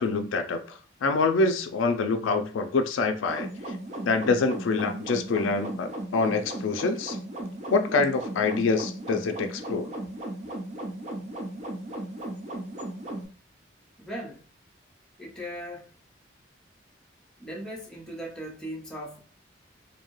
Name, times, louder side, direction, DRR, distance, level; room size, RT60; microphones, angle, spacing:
voice 1, 0.0-3.5 4.0-7.2 7.7-9.9, left 3 dB, 85° left, 0.4 m, -26 dB
sound 1, 3.3-13.3, right 1 dB, 35° right, 0.5 m, -36 dB
voice 2, 14.0-14.4 15.2-15.9 17.4-19.2, equal, 5° left, 0.7 m, -38 dB
2.7 x 2.2 x 3.0 m
head